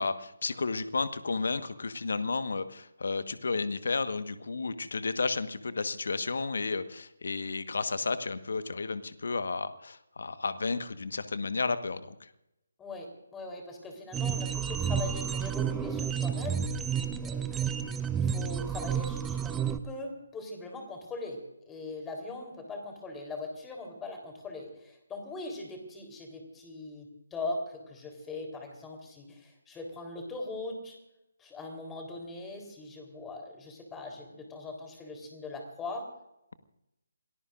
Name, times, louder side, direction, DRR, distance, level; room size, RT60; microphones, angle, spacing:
voice 1, 0.0-12.3, left 4 dB, 60° left, 11 dB, 1.4 m, -32 dB
voice 2, 12.8-16.6 17.2-17.8 18.1-19.6 19.8-21.4 21.7-31.0 31.4-36.1, left 2 dB, 10° left, 3 dB, 3.8 m, -40 dB
sound 1, 14.1-19.8, right 7 dB, 10° right, 0.6 m, -31 dB
28.0 x 19.5 x 2.6 m, 0.88 s
figure-of-eight pair, 150°, 0 cm